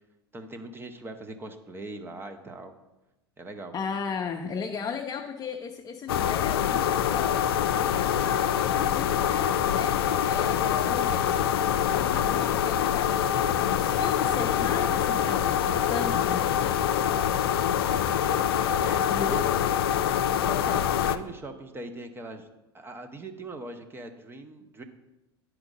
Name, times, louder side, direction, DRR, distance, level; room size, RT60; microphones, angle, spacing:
voice 1, 0.3-2.7 3.4-3.7 18.8-19.4 20.7-22.5 22.7-24.8, right 2 dB, 15° right, 5 dB, 0.7 m, -41 dB
voice 2, 3.7-16.8 19.1-19.6 20.5-20.8, left 6 dB, 25° left, 2 dB, 0.6 m, -36 dB
sound 1, 6.1-21.2, left 9 dB, 70° left, 0.4 m, -25 dB
9.6 x 4.6 x 4.0 m, 0.99 s
figure-of-eight pair, 80°, 13 cm